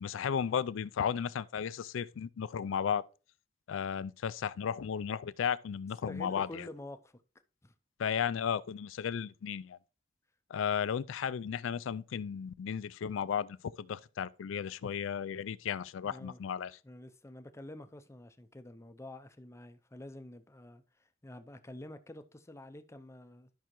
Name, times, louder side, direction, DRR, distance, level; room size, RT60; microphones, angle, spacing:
voice 1, 0.0-3.0 3.7-6.6 8.0-9.8 10.5-16.8, left 7 dB, 75° left, 0.4 m, -34 dB
voice 2, 6.0-7.2 7.6-7.7 16.0-16.4 16.8-23.6, left 1 dB, 15° left, 0.5 m, -48 dB
12.5 x 5.6 x 3.0 m
head